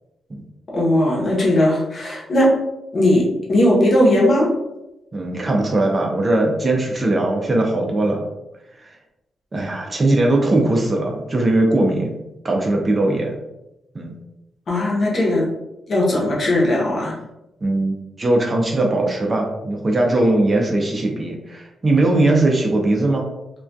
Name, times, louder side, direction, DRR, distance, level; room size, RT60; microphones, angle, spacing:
voice 1, 0.7-2.5 2.9-4.5 14.7-15.5 15.9-17.2, left 1 dB, 40° left, -3 dB, 0.7 m, -18 dB
voice 2, 5.1-8.3 9.5-13.4 13.9-14.1 17.6-23.3, right 2 dB, 25° right, 0 dB, 0.4 m, -19 dB
2.2 x 2.2 x 2.5 m, 0.93 s
wide cardioid pair, 140°, 0 cm